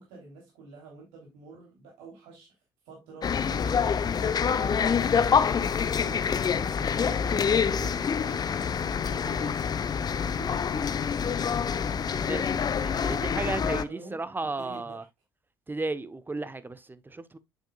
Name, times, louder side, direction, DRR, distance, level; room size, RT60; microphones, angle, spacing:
voice 1, 0.0-2.6 2.8-7.5 7.8-9.7 10.0-11.0 12.8-15.0, right 3 dB, 70° right, 3.2 m, -48 dB
sound 1, 3.2-13.8, left 7 dB, 35° left, 0.7 m, -26 dB
voice 2, 12.2-15.0 15.7-17.4, right 3 dB, 15° right, 1.0 m, -34 dB
8.0 x 7.5 x 2.3 m
hypercardioid pair, 55°, 12 cm